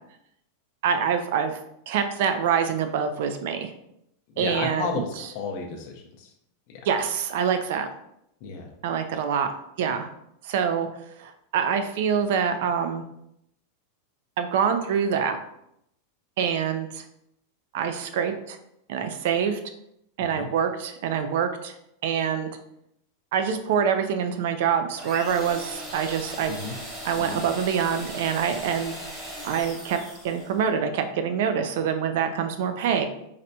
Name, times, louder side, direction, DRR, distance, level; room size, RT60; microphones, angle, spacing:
voice 1, 0.8-1.6 1.9-3.7 4.4-5.3 6.8-7.9 8.8-9.5 9.8-10.1 10.4-10.9 11.2-13.0 14.4-15.4 16.4-17.0 17.7-18.6 18.9-19.6 20.2-21.7 22.0-22.5 23.3-26.5 27.0-33.1, right 7 dB, 60° right, 8 dB, 0.4 m, -25 dB
voice 2, 4.4-6.3 6.7-6.8 8.4-8.7 20.4-20.5 26.5-26.8 27.2-27.4, left 5 dB, 45° left, 0 dB, 0.5 m, -33 dB
sound 1, 25.0-30.6, right 1 dB, 15° right, 0.8 m, -38 dB
4.0 x 2.2 x 2.7 m, 0.78 s
supercardioid pair, 160°, 0 cm